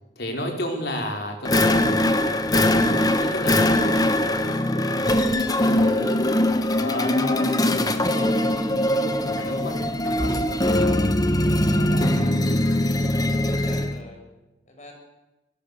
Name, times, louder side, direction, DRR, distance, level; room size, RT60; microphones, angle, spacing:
voice 1, 0.1-2.3 2.9-6.1 6.7-8.5 8.8-11.1 11.4-12.2 13.2-13.4, equal, 60° left, 2 dB, 4.8 m, -33 dB
sound 1, 1.5-14.0, left 1 dB, 20° left, 1.3 m, -21 dB
voice 2, 13.0-14.3 14.7-14.9, left 1 dB, 40° left, 2 dB, 6.3 m, -46 dB
24.0 x 19.5 x 6.8 m, 1.0 s
head